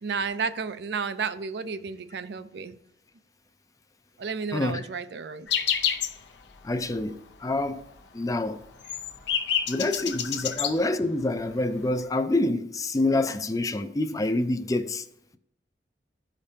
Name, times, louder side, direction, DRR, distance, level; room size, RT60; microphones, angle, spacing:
voice 1, 0.0-2.8 4.2-5.5 10.4-10.5, right 5 dB, 70° right, 0.5 m, -32 dB
voice 2, 4.5-4.8 6.6-7.9 8.1-8.6 9.7-15.1, left 2 dB, 20° left, 0.4 m, -27 dB
sound 1, 5.5-6.2 6.5-6.6 7.0-7.3 7.6-7.7 8.0-10.8 11.5-11.6 11.8-12.0, left 8 dB, 80° left, 0.7 m, -28 dB
14.0 x 5.1 x 2.8 m
head